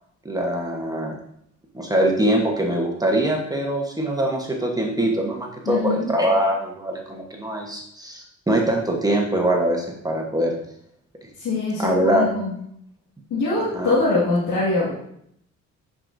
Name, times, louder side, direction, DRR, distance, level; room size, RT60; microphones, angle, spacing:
voice 1, 0.2-1.1 1.7-10.5 11.8-12.3 13.7-14.0, right 1 dB, 10° right, 0 dB, 1.1 m, -23 dB
voice 2, 5.7-6.1 11.4-12.5 13.3-14.9, left 3 dB, 80° left, -9 dB, 1.9 m, -23 dB
9.9 x 4.9 x 2.6 m, 0.71 s
cardioid pair, 90°, 30 cm